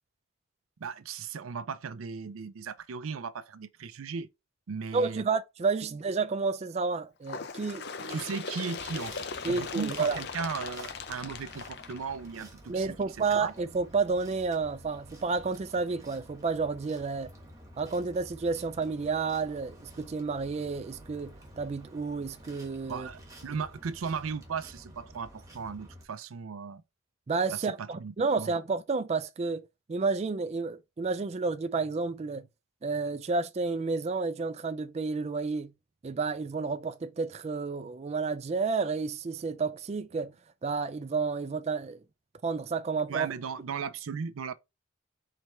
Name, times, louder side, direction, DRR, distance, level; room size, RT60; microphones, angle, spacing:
voice 1, 0.8-4.3 4.7-5.3 8.1-13.5 22.9-26.8 27.5-28.5 43.1-44.5, right 5 dB, 90° right, 0.5 m, -37 dB
voice 2, 4.9-8.2 9.4-10.2 12.7-17.3 17.8-23.1 27.3-32.5 32.8-35.7 36.0-40.3 40.6-42.0 42.4-43.3, right 4 dB, 30° right, 0.3 m, -31 dB
Bird, 7.2-12.7 13.6-13.7 14.1-14.2 15.0-15.1 16.0-16.1 17.0-17.1, left 5 dB, 55° left, 0.5 m, -39 dB
sound 1, 8.8-26.0, right 1 dB, 15° right, 1.2 m, -51 dB
4.5 x 3.3 x 3.1 m
head